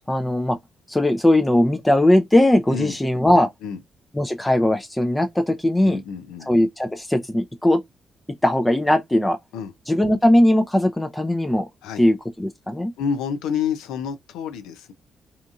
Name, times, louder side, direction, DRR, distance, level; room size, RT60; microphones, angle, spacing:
voice 1, 0.1-0.6 0.9-3.5 4.2-6.0 6.5-7.8 8.4-9.4 9.9-11.7 12.0-12.9, left 1 dB, 15° left, 0.5 m, -19 dB
voice 2, 5.8-6.5 9.5-9.7 11.8-12.0 13.0-14.9, left 7 dB, 85° left, 0.4 m, -28 dB
2.8 x 2.4 x 2.3 m
supercardioid pair, 50°, 0 cm